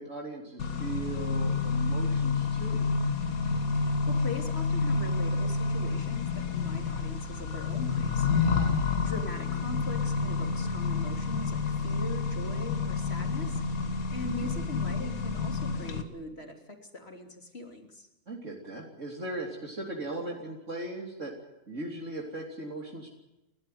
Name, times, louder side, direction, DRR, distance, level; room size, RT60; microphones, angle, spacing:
voice 1, 0.0-2.9 8.5-8.8 14.2-14.5 18.3-21.3 21.7-23.1, right 2 dB, 60° right, -1 dB, 3.7 m, -38 dB
Accelerating revving vroom, 0.6-16.0, left 4 dB, 80° left, 2.1 m, -29 dB
voice 2, 3.7-18.1, left 2 dB, 45° left, 3 dB, 3.3 m, -41 dB
29.5 x 13.0 x 9.4 m, 0.93 s
omnidirectional pair, 1.5 m